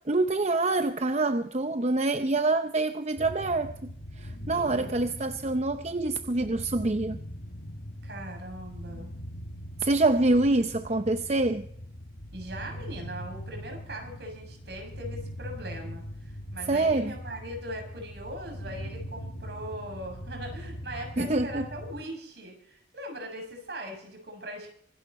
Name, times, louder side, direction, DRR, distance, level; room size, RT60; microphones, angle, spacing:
voice 1, 0.1-3.7 4.2-7.2 9.8-11.7 16.7-17.1 21.2-21.7, right 2 dB, 40° right, 0.7 m, -26 dB
sound 1, 3.2-22.0, equal, 85° left, 2.5 m, -41 dB
voice 2, 4.5-5.0 8.0-9.1 12.3-24.7, right 1 dB, 65° right, 6.9 m, -40 dB
25.0 x 12.0 x 4.3 m
head